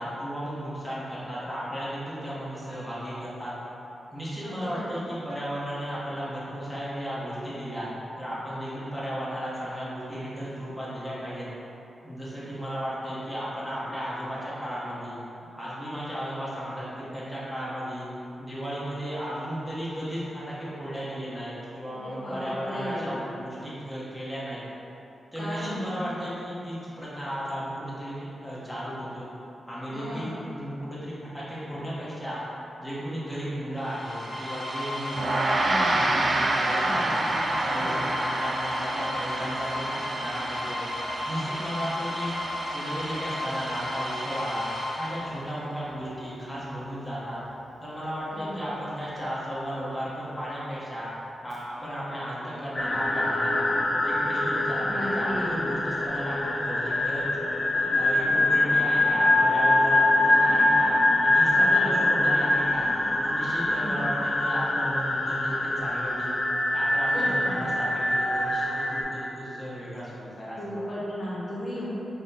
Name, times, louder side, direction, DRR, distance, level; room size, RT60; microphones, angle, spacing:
voice 1, 0.0-3.5 4.1-7.9 8.2-11.5 12.0-15.2 15.5-18.1 18.4-24.6 25.3-29.3 29.7-32.4 32.8-37.1 37.5-40.8 41.3-42.3 42.7-44.7 45.0-47.4 47.8-51.1 51.4-53.7 54.0-57.3 57.7-62.8 63.2-66.3 66.7-70.9, equal, ahead, -10 dB, 1.0 m, -34 dB
voice 2, 4.4-5.1 21.9-23.2 25.3-26.0 29.9-30.4 35.6-36.1 36.8-38.1 48.3-48.7 54.8-55.7 61.5-62.4 63.6-64.0 67.1-67.7 70.6-71.9, left 1 dB, 45° left, -7 dB, 1.2 m, -35 dB
sound 1, 33.8-45.6, left 1 dB, 25° right, 0.8 m, -34 dB
Gong, 35.1-44.7, right 2 dB, 45° right, 0.3 m, -29 dB
sound 2, 52.7-69.0, left 1 dB, 25° left, 0.5 m, -24 dB
4.1 x 2.9 x 4.0 m, 3.0 s
wide cardioid pair, 135°, 0 cm